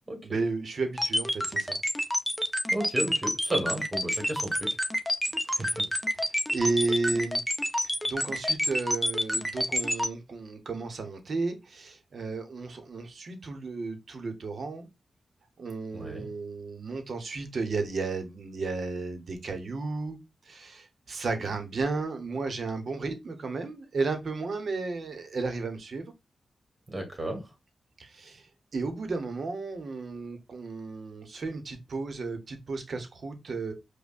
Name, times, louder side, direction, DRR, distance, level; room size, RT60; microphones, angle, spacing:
voice 1, 0.2-1.8 5.5-5.8 6.3-7.4 7.8-14.9 15.6-20.2 20.4-26.1 28.0-33.7, right 3 dB, 65° right, 0.8 m, -33 dB
sound 1, 1.0-10.1, equal, 5° left, 0.6 m, -28 dB
voice 2, 2.7-4.7 5.6-5.7 15.9-16.3 26.9-27.4, right 1 dB, 30° right, 1.4 m, -32 dB
5.1 x 2.2 x 2.4 m
cardioid pair, 65°, 0 cm